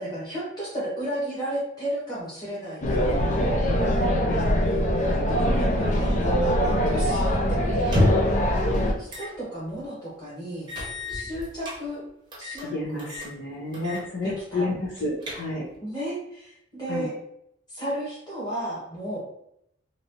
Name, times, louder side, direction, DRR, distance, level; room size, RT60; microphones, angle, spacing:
voice 1, 0.0-4.1 4.4-8.4 9.0-10.7 11.1-12.0 12.4-13.1 13.7-14.0 14.2-14.6 15.8-17.1 17.7-19.2, right 1 dB, 20° left, -8 dB, 1.4 m, -34 dB
sound 1, 2.8-8.9, equal, 35° left, 0.4 m, -23 dB
sound 2, 7.8-8.4 9.1-9.3 9.7-9.8 10.7-11.8 12.3-12.7 13.0-13.3 13.7-14.1 14.4-14.5 15.0-15.7, left 1 dB, 25° right, 0.8 m, -28 dB
voice 2, 12.6-15.7 16.9-17.1, left 2 dB, 60° left, -5 dB, 0.8 m, -31 dB
3.1 x 2.6 x 2.8 m, 0.76 s
head